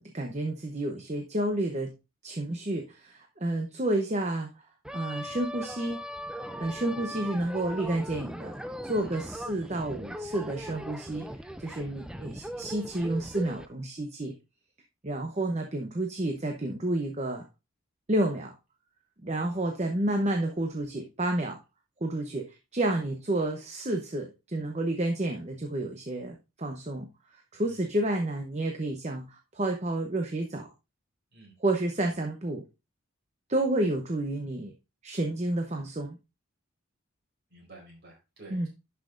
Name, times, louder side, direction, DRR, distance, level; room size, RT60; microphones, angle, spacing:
voice 1, 0.0-1.9 2.2-4.5 4.9-6.0 6.6-8.6 8.8-14.3 15.0-17.4 18.1-18.5 19.2-21.6 22.0-30.7 31.6-32.6 33.5-34.7 35.0-36.2 38.5-38.7, right 1 dB, 30° right, 3 dB, 0.8 m, -30 dB
sound 1, 4.8-13.7, equal, 5° right, 0.4 m, -39 dB
voice 2, 19.4-19.7 27.7-27.8 31.3-31.5 37.5-38.7, right 2 dB, 50° right, 0 dB, 4.4 m, -51 dB
11.0 x 5.8 x 2.5 m, 0.26 s
head